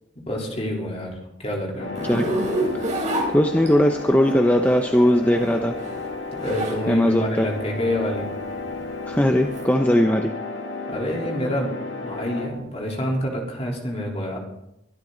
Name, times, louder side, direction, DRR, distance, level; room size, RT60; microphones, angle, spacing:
voice 1, 0.3-1.1 1.4-1.9 6.4-8.3 10.9-11.7 12.0-14.4, left 1 dB, 30° left, -1 dB, 3.8 m, -27 dB
sound 1, 1.8-12.5, left 3 dB, 85° left, 2.6 m, -33 dB
Zipper (clothing), 1.9-4.0 5.1-6.8 7.2-9.6, right 1 dB, 40° right, 4.1 m, -28 dB
voice 2, 3.3-5.8 6.9-7.5 9.1-10.3, equal, 10° left, 4 dB, 0.8 m, -19 dB
23.0 x 12.5 x 4.0 m, 0.84 s
head